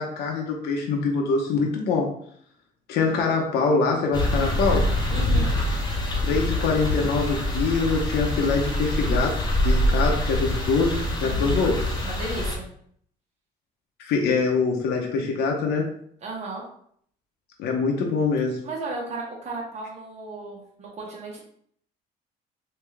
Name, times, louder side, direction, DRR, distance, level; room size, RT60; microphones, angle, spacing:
voice 1, 0.0-2.1 2.9-4.9 6.2-9.4 9.6-11.8 14.0-15.9 17.6-18.6, left 4 dB, 75° left, 0 dB, 0.7 m, -24 dB
sound 1, 4.1-12.6, left 1 dB, 25° left, 0.8 m, -25 dB
voice 2, 5.1-5.5 11.2-11.7 12.0-12.6 16.2-16.6 18.6-21.4, right 3 dB, 40° right, -3 dB, 1.3 m, -35 dB
3.4 x 2.8 x 3.2 m, 0.64 s
cardioid pair, 110°, 17 cm